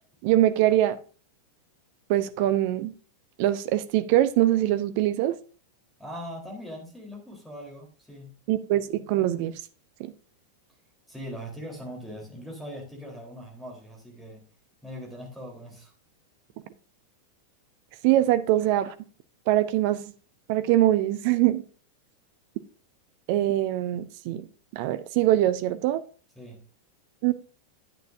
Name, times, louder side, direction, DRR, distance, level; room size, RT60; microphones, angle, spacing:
voice 1, 0.2-1.0 2.1-2.9 3.4-5.4 8.5-9.6 10.0-10.1 18.0-18.9 19.5-20.0 20.5-21.6 23.3-24.4 24.7-26.0 27.2-27.3, right 14 dB, 45° right, 0.7 m, -23 dB
voice 2, 6.0-8.4 11.1-14.4 14.8-15.9 26.4-26.6, equal, ahead, 3.8 m, -40 dB
10.5 x 9.0 x 2.7 m
figure-of-eight pair, 90°, 0 cm